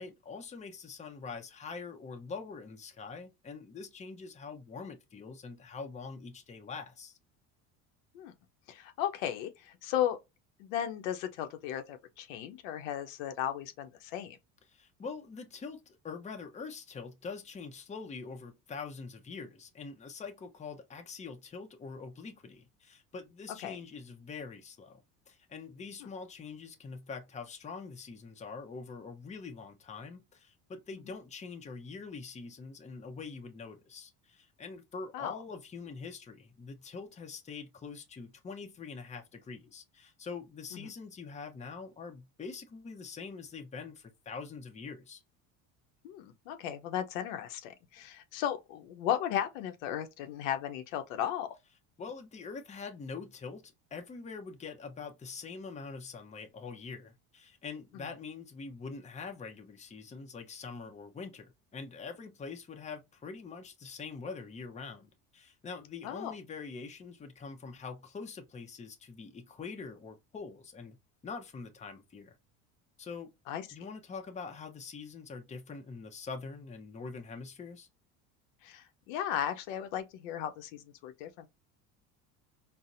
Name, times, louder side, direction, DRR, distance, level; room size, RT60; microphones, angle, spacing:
voice 1, 0.0-7.2 14.7-45.2 52.0-71.0 71.2-72.4 73.0-73.3 73.7-77.9, left 4 dB, 20° left, 0.6 m, -44 dB
voice 2, 8.7-10.2 10.6-14.4 23.6-23.8 26.0-26.1 35.1-35.3 40.7-40.9 46.0-51.5 57.9-58.1 66.0-66.3 73.5-73.7 78.6-81.5, left 10 dB, 85° left, 0.6 m, -35 dB
4.0 x 2.0 x 2.5 m
supercardioid pair, 100°, 38 cm